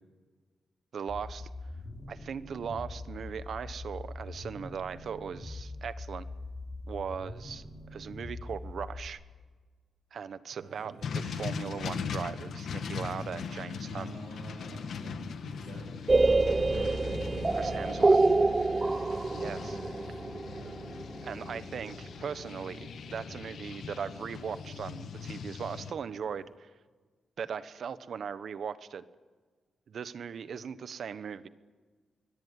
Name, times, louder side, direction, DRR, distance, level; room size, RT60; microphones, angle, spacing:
voice 1, 0.9-1.5 2.1-6.3 6.9-7.7 7.9-9.2 10.1-14.1 17.5-18.2 19.3-19.8 21.2-26.7 27.4-29.0 29.9-31.5, right 7 dB, 65° right, 13 dB, 1.1 m, -39 dB
sound 1, 1.1-9.1, left 2 dB, 25° left, 3.7 m, -43 dB
voice 2, 10.5-11.2 13.9-17.8 18.2-20.9, right 4 dB, 90° right, -2 dB, 6.3 m, -50 dB
sound 2, 11.0-25.9, left 6 dB, 75° left, 1.6 m, -40 dB
sound 3, 16.1-21.8, right 3 dB, 25° right, 0.7 m, -26 dB
24.0 x 18.5 x 9.5 m, 1.4 s
cardioid pair, 95°, 0 cm